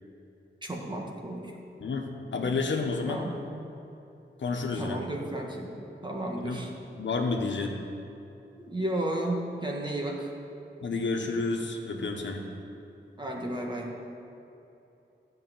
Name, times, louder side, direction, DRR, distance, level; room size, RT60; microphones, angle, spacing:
voice 1, 0.6-1.5 3.1-3.3 4.8-5.7 6.0-6.7 8.6-10.3 13.2-13.9, right 1 dB, 25° right, 0 dB, 1.7 m, -33 dB
voice 2, 1.8-3.3 4.4-5.1 6.4-6.6 6.9-7.8 10.8-12.5, left 3 dB, 75° left, 2 dB, 1.4 m, -30 dB
14.0 x 5.9 x 9.2 m, 2.9 s
wide cardioid pair, 140°, 19 cm